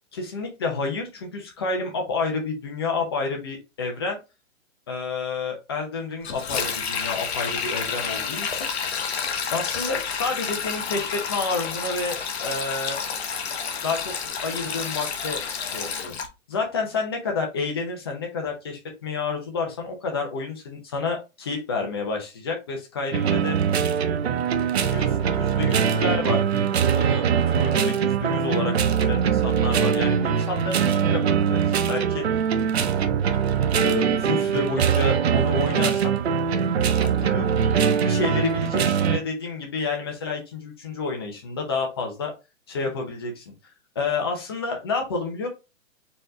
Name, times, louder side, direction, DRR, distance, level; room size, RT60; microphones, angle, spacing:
voice 1, 0.1-4.2 4.9-8.7 9.5-13.0 13.8-16.1 16.5-23.6 24.8-26.4 26.9-28.7 29.0-32.2 33.7-36.1 37.0-42.3 42.7-43.4 43.9-45.5, left 4 dB, 20° left, 2 dB, 0.7 m, -29 dB
Sink (filling or washing), 6.2-16.3, left 6 dB, 50° left, 1.0 m, -30 dB
sound 1, 23.1-39.2, right 7 dB, 50° right, 0.6 m, -22 dB
4.6 x 3.1 x 3.7 m, 0.26 s
hypercardioid pair, 175°, 40 cm